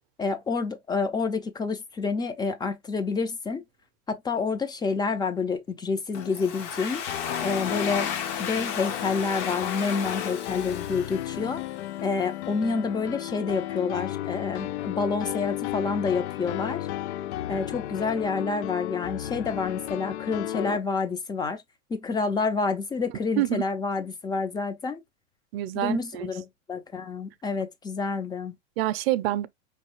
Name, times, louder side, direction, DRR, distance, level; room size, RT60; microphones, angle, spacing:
voice 1, 0.2-3.6 4.1-7.0 7.4-8.1 8.4-11.6 12.0-16.9 17.5-21.6 21.9-25.0 25.7-28.6, left 4 dB, 10° left, 0.6 m, -28 dB
Domestic sounds home sounds, 6.1-11.8, left 7 dB, 40° left, 1.2 m, -33 dB
Piano, 7.1-20.8, left 14 dB, 60° left, 0.5 m, -34 dB
voice 2, 25.5-26.3 28.8-29.5, right 15 dB, 50° right, 0.7 m, -26 dB
5.2 x 3.3 x 3.0 m
hypercardioid pair, 130°, 38 cm